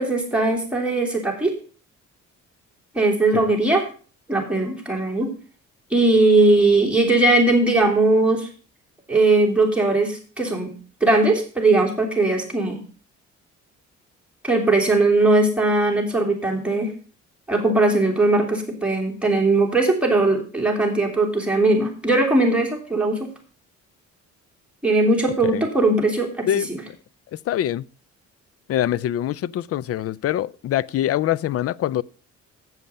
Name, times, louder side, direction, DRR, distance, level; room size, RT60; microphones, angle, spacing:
voice 1, 0.0-1.5 2.9-3.9 4.3-5.3 5.9-8.5 9.1-10.7 11.0-12.8 14.4-16.9 17.5-23.3 24.8-26.8, right 2 dB, 5° right, 3.1 m, -19 dB
voice 2, 27.5-27.8 28.7-32.0, left 12 dB, 50° left, 0.4 m, -24 dB
7.8 x 7.3 x 5.4 m
cardioid pair, 90°, 30 cm